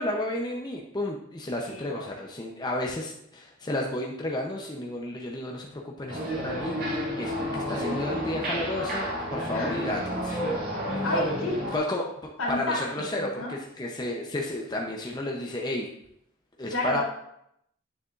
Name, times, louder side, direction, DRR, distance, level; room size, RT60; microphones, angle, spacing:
voice 1, 0.0-10.4 11.7-12.1 12.5-15.9 16.6-17.0, left 1 dB, 20° left, -1 dB, 0.7 m, -32 dB
voice 2, 1.7-2.1 9.5-9.7 11.0-11.8 12.4-12.8 13.1-13.5 16.7-17.0, left 2 dB, 75° left, -5 dB, 2.8 m, -30 dB
sound 1, 6.1-11.8, equal, 45° right, 2.2 m, -30 dB
9.4 x 6.8 x 2.5 m, 0.75 s
head